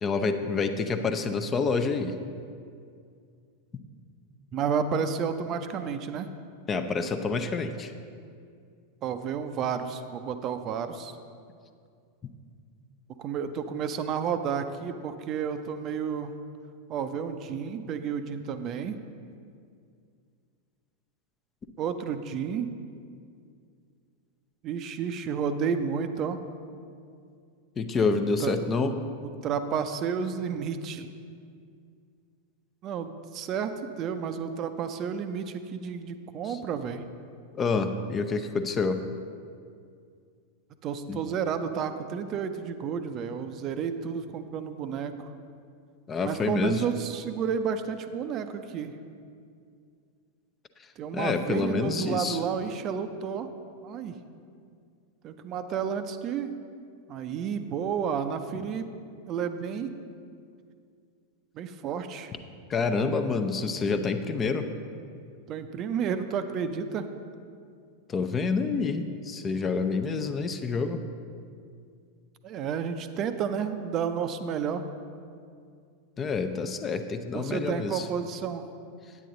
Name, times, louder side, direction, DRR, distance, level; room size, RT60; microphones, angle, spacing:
voice 1, 0.0-2.1 6.7-7.9 27.8-28.9 36.4-36.6 37.6-39.0 41.1-41.2 46.1-46.8 51.1-52.4 62.7-64.7 68.1-71.0 76.2-78.1, left 4 dB, 25° left, 8 dB, 0.5 m, -28 dB
voice 2, 4.5-6.3 9.0-11.1 13.2-16.3 16.9-19.0 21.8-22.7 24.6-26.4 28.4-28.9 29.2-31.1 32.8-37.0 40.8-45.3 46.2-48.9 51.0-53.5 53.8-54.1 55.2-56.5 57.1-58.9 59.3-59.9 61.6-62.3 65.5-67.1 72.4-74.8 77.3-78.7, right 7 dB, 35° right, 9 dB, 0.5 m, -31 dB
9.1 x 9.1 x 3.8 m, 2.3 s
figure-of-eight pair, 90°, 0 cm